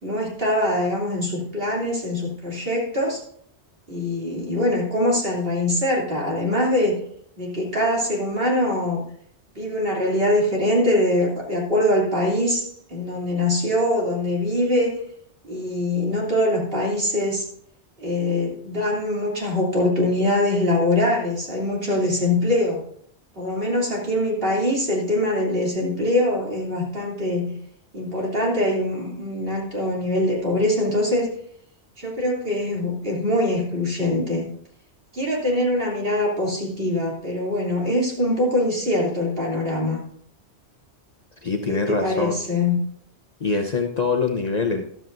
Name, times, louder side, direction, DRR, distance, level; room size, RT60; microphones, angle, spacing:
voice 1, 0.0-3.2 3.9-7.0 7.4-9.0 9.5-15.0 15.4-17.4 18.0-22.8 23.4-27.6 27.9-31.3 32.0-34.5 35.1-40.0 41.6-42.8, left 1 dB, 55° right, -3 dB, 3.2 m, -23 dB
voice 2, 41.4-42.4 43.4-44.8, left 4 dB, 40° left, 4 dB, 0.8 m, -24 dB
13.5 x 12.0 x 2.6 m, 0.65 s
omnidirectional pair, 1.2 m